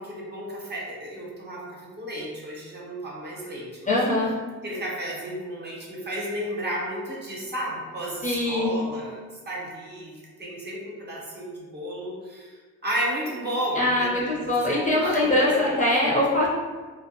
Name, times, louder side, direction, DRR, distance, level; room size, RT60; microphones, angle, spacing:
voice 1, 0.0-4.0 4.6-15.7, equal, 35° right, -4 dB, 0.8 m, -33 dB
voice 2, 3.9-4.3 8.2-8.8 13.7-16.6, left 1 dB, 25° left, -5 dB, 0.7 m, -22 dB
2.4 x 2.2 x 2.6 m, 1.4 s
cardioid pair, 80°, 31 cm